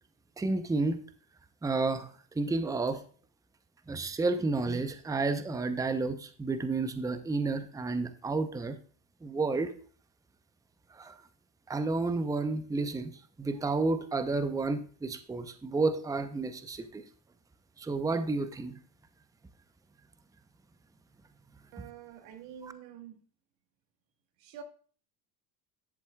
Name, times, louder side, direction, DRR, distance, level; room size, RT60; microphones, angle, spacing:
voice 1, 0.4-1.0 1.6-2.1 2.4-3.0 3.9-8.8 9.2-9.7 10.9-11.1 11.7-13.1 13.4-17.0 17.8-18.8 22.6-22.7, right 3 dB, 5° right, 10 dB, 0.6 m, -31 dB
voice 2, 21.7-23.2 24.4-24.6, right 9 dB, 80° right, 7 dB, 1.6 m, -47 dB
10.5 x 7.5 x 2.3 m, 0.43 s
supercardioid pair, 85°, 49 cm